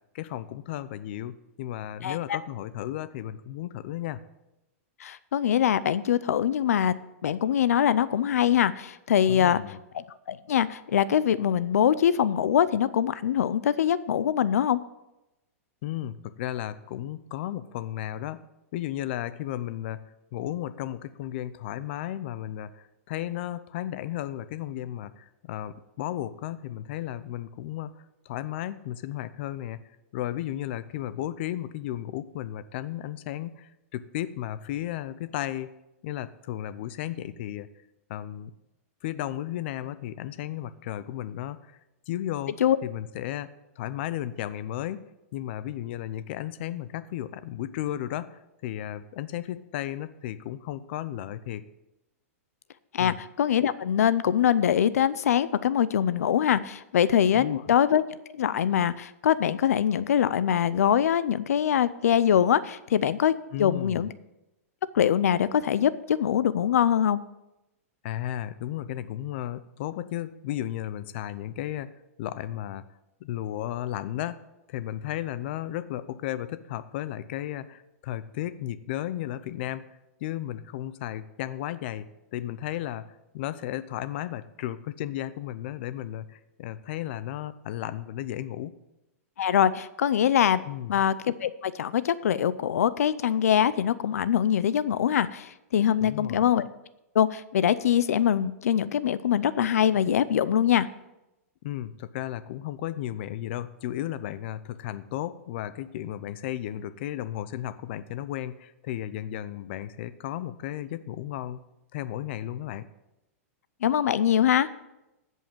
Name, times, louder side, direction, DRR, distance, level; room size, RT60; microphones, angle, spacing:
voice 1, 0.1-4.2 9.3-9.8 15.8-18.4 18.7-27.9 28.3-29.8 30.1-35.7 36.0-37.7 38.1-38.5 39.0-41.8 42.1-43.5 43.8-51.7 53.0-53.2 57.3-57.6 63.5-64.1 68.0-71.9 72.2-72.8 73.2-74.4 74.7-88.7 90.7-91.0 96.0-96.4 101.6-111.6 111.9-112.9, left 12 dB, 50° left, 14 dB, 0.6 m, -34 dB
voice 2, 2.0-2.4 5.0-6.9 7.2-9.6 9.9-14.8 42.6-42.8 52.9-58.0 58.3-63.3 63.6-64.1 64.9-67.2 89.4-90.6 90.9-96.7 97.1-100.9 113.8-114.7, left 9 dB, 90° left, 16 dB, 0.5 m, -23 dB
15.0 x 5.5 x 7.4 m, 0.94 s
supercardioid pair, 160°, 8 cm